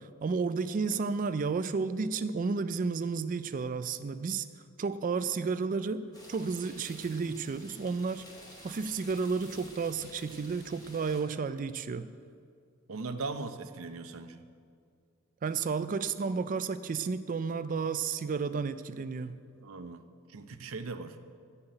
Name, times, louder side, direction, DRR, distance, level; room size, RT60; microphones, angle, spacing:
voice 1, 0.2-4.5 4.8-8.3 8.6-12.1 15.4-19.4, right 5 dB, 40° right, 13 dB, 0.3 m, -32 dB
sound 1, 6.1-11.2, left 1 dB, 20° left, 2.6 m, -51 dB
voice 2, 12.9-14.4 19.6-20.0 20.3-21.2, right 3 dB, 70° right, 8 dB, 0.7 m, -39 dB
12.5 x 5.8 x 8.8 m, 2.3 s
head